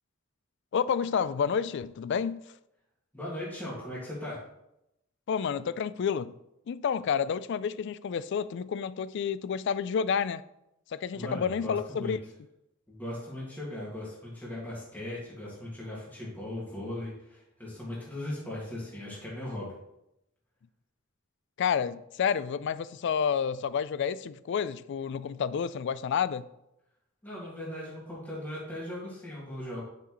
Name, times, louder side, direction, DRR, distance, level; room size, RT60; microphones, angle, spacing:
voice 1, 0.7-2.5 5.3-6.4 6.7-10.4 10.9-12.2 21.6-26.5, left 7 dB, 60° left, 0.3 m, -29 dB
voice 2, 3.1-4.4 11.1-12.1 12.9-19.7 27.2-29.8, left 1 dB, 10° left, 2.0 m, -38 dB
9.7 x 6.0 x 3.1 m
head